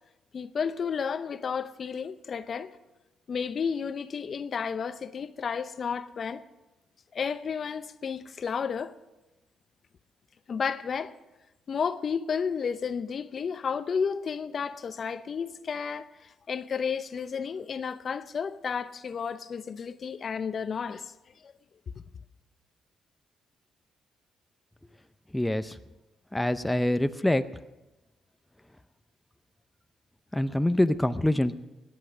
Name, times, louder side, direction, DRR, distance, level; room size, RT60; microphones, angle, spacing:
voice 1, 0.3-2.8 3.3-6.4 7.1-8.9 10.5-11.1 11.7-21.1 21.4-21.5, left 6 dB, 50° left, 0.7 m, -32 dB
voice 2, 25.3-25.8 26.3-27.4 30.3-31.6, left 1 dB, 5° left, 0.6 m, -25 dB
17.5 x 10.5 x 6.1 m
cardioid pair, 90°, 0 cm